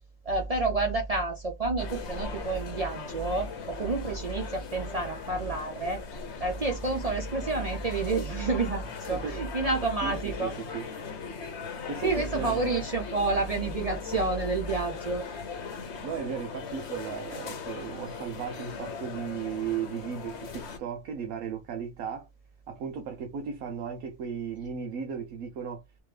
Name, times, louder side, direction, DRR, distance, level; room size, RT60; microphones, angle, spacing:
voice 1, 0.2-6.0 6.4-10.5 12.0-15.2, right 3 dB, 40° right, 0.5 m, -29 dB
sound 1, 1.8-20.8, left 5 dB, 55° left, 1.0 m, -39 dB
voice 2, 9.1-9.4 10.0-10.9 11.9-12.8 16.0-22.3 22.7-25.8, right 7 dB, 80° right, 1.2 m, -35 dB
3.5 x 3.1 x 3.2 m
omnidirectional pair, 1.5 m